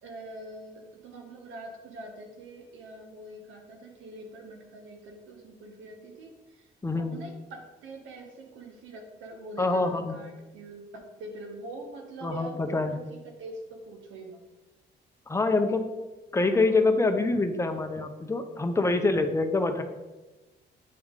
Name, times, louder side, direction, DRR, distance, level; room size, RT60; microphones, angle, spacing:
voice 1, 0.0-6.7 6.9-14.4, right 2 dB, 80° right, 3 dB, 1.2 m, -44 dB
voice 2, 6.8-7.2 9.6-10.2 12.2-12.9 15.3-15.9 16.3-19.8, left 3 dB, 15° left, 6 dB, 0.6 m, -25 dB
8.4 x 3.1 x 3.7 m, 1.1 s
cardioid pair, 90°, 20 cm